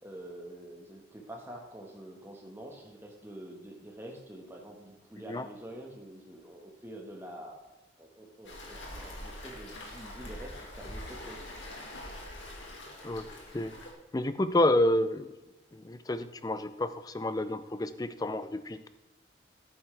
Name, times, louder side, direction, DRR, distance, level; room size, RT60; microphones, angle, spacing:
voice 1, 0.0-7.6 8.0-11.6, right 1 dB, 10° right, 0 dB, 1.5 m, -46 dB
Waves surf, 8.4-13.9, left 1 dB, 70° left, 2.2 m, -44 dB
voice 2, 14.1-15.3 15.7-18.9, left 1 dB, 20° left, 12 dB, 0.4 m, -29 dB
11.0 x 9.1 x 3.4 m, 1.1 s
head